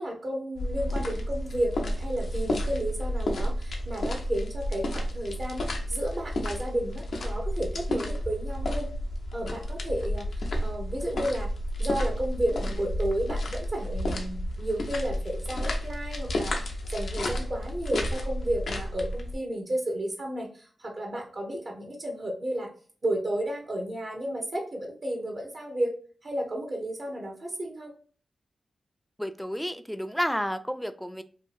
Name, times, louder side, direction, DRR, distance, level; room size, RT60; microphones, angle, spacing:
voice 1, 0.0-8.9 9.3-11.5 11.8-22.7 23.0-25.9 26.2-27.9, right 1 dB, 55° right, 1 dB, 0.9 m, -32 dB
sound 1, 0.6-19.3, left 1 dB, 75° left, 0.5 m, -31 dB
voice 2, 29.2-31.2, equal, 5° left, 9 dB, 0.3 m, -31 dB
2.7 x 2.4 x 2.5 m, 0.42 s
cardioid pair, 40°, 0 cm